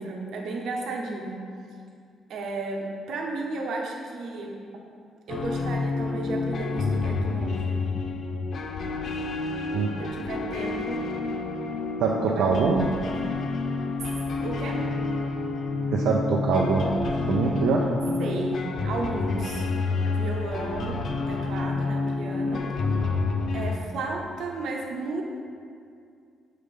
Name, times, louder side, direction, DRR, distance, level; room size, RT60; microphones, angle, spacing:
voice 1, 0.0-1.4 2.3-4.6 5.3-7.9 10.0-11.1 12.3-13.3 14.4-14.8 18.2-19.7 20.0-22.7 23.5-25.2, right 3 dB, 75° right, 0 dB, 0.9 m, -34 dB
sound 1, 5.3-23.8, left 3 dB, 60° left, 0.4 m, -29 dB
voice 2, 12.0-12.9 15.9-17.9, right 5 dB, 90° right, -2 dB, 0.5 m, -24 dB
6.6 x 3.3 x 5.3 m, 2.3 s
cardioid pair, 90°, 0 cm